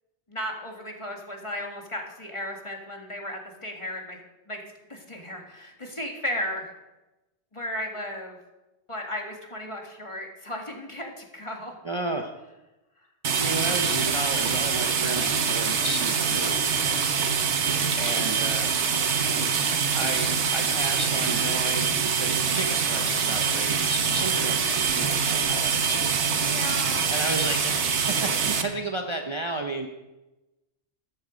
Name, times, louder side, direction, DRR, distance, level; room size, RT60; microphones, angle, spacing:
voice 1, 0.3-4.6 4.9-6.7 7.5-8.4 8.9-11.7 26.3-27.1, left 1 dB, 25° left, 1 dB, 1.9 m, -35 dB
voice 2, 11.8-12.3 13.3-16.7 18.0-18.8 19.9-26.0 27.1-29.9, right 1 dB, 30° right, 3 dB, 0.7 m, -33 dB
sound 1, 13.2-28.6, right 6 dB, 80° right, 1.3 m, -25 dB
13.0 x 9.4 x 5.2 m, 1.0 s
omnidirectional pair, 1.2 m